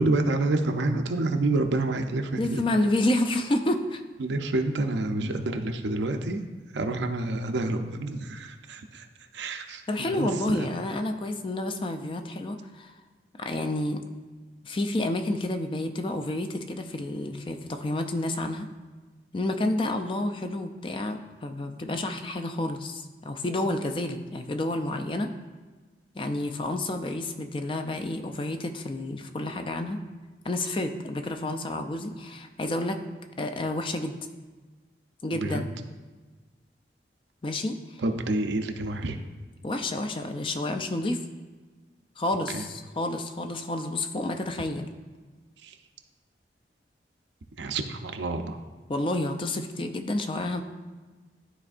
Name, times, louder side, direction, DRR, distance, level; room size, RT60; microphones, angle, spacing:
voice 1, 0.0-2.6 4.2-6.4 6.7-9.1 9.3-10.7 35.3-35.6 38.0-39.2 42.5-42.6 45.6-45.7 47.6-48.6, right 2 dB, 90° right, 6 dB, 0.6 m, -28 dB
voice 2, 2.4-4.0 9.9-12.9 13.4-14.0 14.6-18.7 19.3-25.3 26.2-30.0 30.4-33.0 33.4-34.2 35.2-35.7 37.4-37.8 39.6-41.2 42.2-44.9 48.9-50.6, left 1 dB, 30° left, 6 dB, 0.4 m, -29 dB
12.5 x 4.3 x 2.5 m, 1.3 s
head